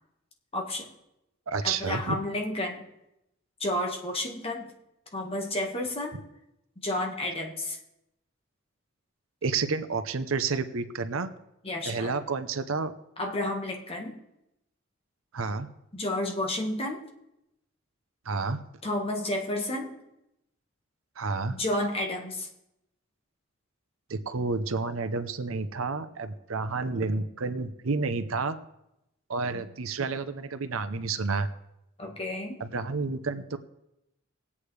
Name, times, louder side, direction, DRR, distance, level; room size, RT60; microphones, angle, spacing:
voice 1, 0.5-0.9 1.6-2.8 3.6-4.7 5.1-6.2 6.8-7.8 11.6-12.1 13.2-14.2 15.9-17.0 18.8-19.9 21.5-22.5 29.5-29.6 32.0-32.6, left 1 dB, 30° left, 1 dB, 1.6 m, -31 dB
voice 2, 1.5-2.2 9.4-11.3 11.9-12.9 15.3-15.7 18.3-18.6 21.2-21.6 24.1-28.6 29.3-31.5 32.6-33.6, right 4 dB, 90° right, 11 dB, 0.7 m, -30 dB
20.5 x 8.4 x 3.3 m, 0.87 s
head